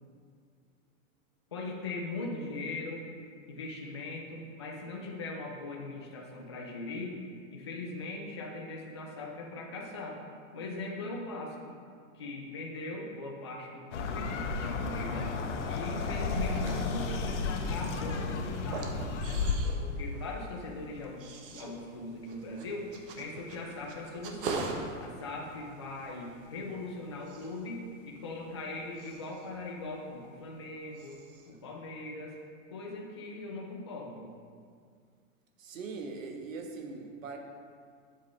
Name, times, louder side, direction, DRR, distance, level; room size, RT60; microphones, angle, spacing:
voice 1, 1.5-3.0 3.5-7.2 7.5-10.2 10.5-11.6 12.1-15.3 15.6-19.1 19.8-22.9 23.2-24.7 25.0-31.2 31.5-32.4 32.7-34.2, left 2 dB, 25° left, -2 dB, 0.3 m, -40 dB
sound 1, 13.9-19.6, left 4 dB, 60° left, 1.0 m, -33 dB
sound 2, 16.4-30.7 30.9-31.6, right 4 dB, 40° right, 0.9 m, -44 dB
voice 2, 35.6-37.4, right 4 dB, 75° right, 3 dB, 1.4 m, -41 dB
11.5 x 7.5 x 3.2 m, 2.1 s
supercardioid pair, 180°, 40 cm